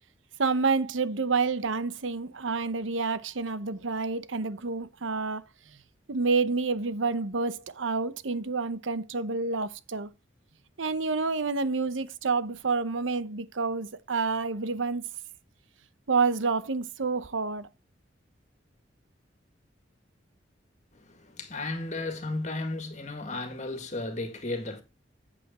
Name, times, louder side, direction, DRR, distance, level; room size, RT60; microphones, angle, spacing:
voice 1, 0.4-5.4 6.1-10.1 10.8-15.0 16.1-17.7, right 4 dB, 90° right, 0.9 m, -28 dB
voice 2, 20.9-24.8, left 2 dB, 40° left, 1.9 m, -34 dB
8.4 x 8.4 x 4.2 m
head